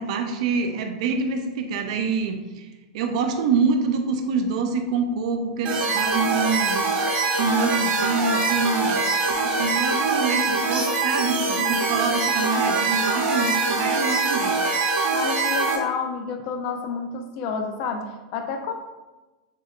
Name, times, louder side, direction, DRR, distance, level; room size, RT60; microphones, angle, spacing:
voice 1, 0.0-2.7 2.9-6.8 7.4-9.1 9.4-14.6, right 4 dB, 65° right, 5 dB, 0.6 m, -26 dB
sound 1, 5.6-15.8, right 3 dB, 35° right, 1.0 m, -23 dB
voice 2, 15.1-18.7, left 5 dB, 45° left, 6 dB, 0.6 m, -30 dB
6.6 x 3.2 x 2.4 m, 1.1 s
supercardioid pair, 145°, 4 cm